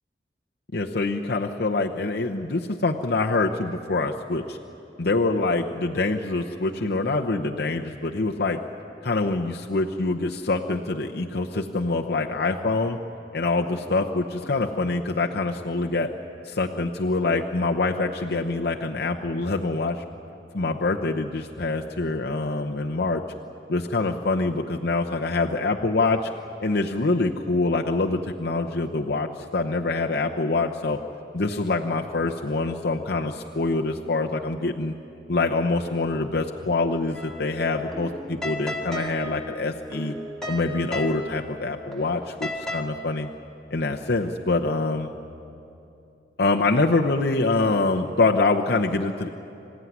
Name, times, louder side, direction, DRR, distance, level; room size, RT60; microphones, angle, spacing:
voice 1, 0.7-4.6 5.0-8.6 9.0-13.0 13.3-16.1 16.4-20.0 20.5-23.2 23.7-26.2 26.6-31.0 31.3-34.9 35.3-40.1 40.5-43.3 43.7-45.1 46.4-49.4, left 3 dB, 65° left, 1 dB, 0.9 m, -25 dB
sound 1, 37.1-42.8, left 1 dB, 5° left, 2.0 m, -35 dB
26.5 x 15.0 x 9.5 m, 2.8 s
head